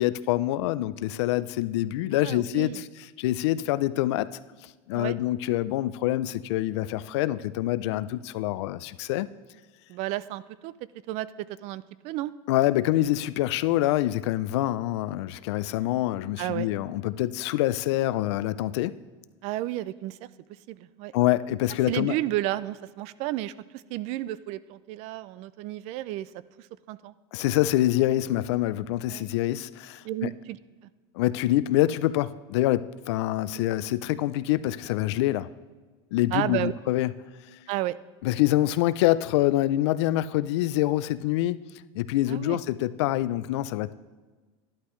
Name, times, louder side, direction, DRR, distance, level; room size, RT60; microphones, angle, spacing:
voice 1, 0.0-4.3 4.9-9.3 12.5-18.9 21.1-22.2 27.3-30.3 31.1-35.5 36.1-37.1 38.2-41.6 41.9-43.9, left 15 dB, 80° left, 16 dB, 0.4 m, -26 dB
voice 2, 2.1-2.8 4.9-5.2 9.9-10.7 11.1-11.3 11.6-12.3 16.4-16.7 19.4-20.2 20.7-21.1 21.9-23.5 23.9-26.3 26.9-27.1 29.1-29.3 30.0-30.6 36.3-36.7 37.7-38.0 42.3-42.6, right 15 dB, 50° right, 18 dB, 0.4 m, -32 dB
11.5 x 11.5 x 3.2 m, 1.3 s
supercardioid pair, 135°, 14 cm